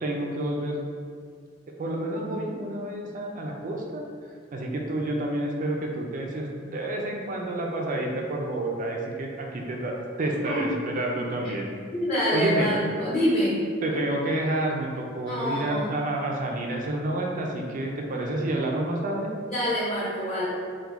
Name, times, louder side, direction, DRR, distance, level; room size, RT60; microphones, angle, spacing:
voice 1, 0.0-0.8 1.8-4.0 4.5-11.7 12.3-12.7 13.8-19.3, right 1 dB, 45° right, 0 dB, 0.5 m, -29 dB
voice 2, 10.3-10.6 11.9-13.6 15.3-16.0 19.5-20.5, equal, 35° left, -9 dB, 0.9 m, -26 dB
3.7 x 2.3 x 4.5 m, 2.2 s
head